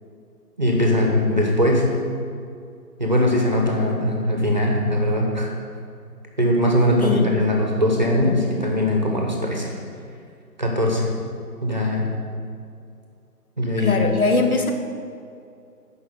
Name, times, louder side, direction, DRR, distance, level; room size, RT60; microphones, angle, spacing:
voice 1, 0.6-2.0 3.0-5.5 6.4-9.7 10.6-11.1 11.6-12.1 13.6-14.0, left 1 dB, 30° right, 0 dB, 1.0 m, -20 dB
voice 2, 13.8-14.7, left 3 dB, 60° left, 4 dB, 1.3 m, -21 dB
9.7 x 5.8 x 6.8 m, 2.5 s
figure-of-eight pair, 170°, 47 cm